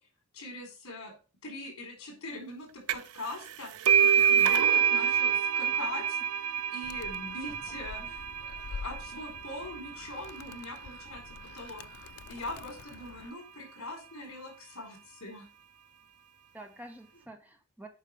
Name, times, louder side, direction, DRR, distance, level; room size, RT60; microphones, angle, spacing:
voice 1, 0.3-1.1 1.4-6.0 6.7-8.3 8.7-11.8 12.3-15.5, left 2 dB, 70° left, 3 dB, 4.2 m, -42 dB
sound 1, 2.9-3.2 3.5-10.8, right 8 dB, 80° right, 0.4 m, -27 dB
Animal, 6.8-13.3, left 5 dB, 90° left, 0.4 m, -47 dB
voice 2, 7.7-8.1 16.5-17.9, right 1 dB, 10° right, 5 dB, 1.1 m, -49 dB
8.6 x 5.4 x 5.1 m, 0.33 s
head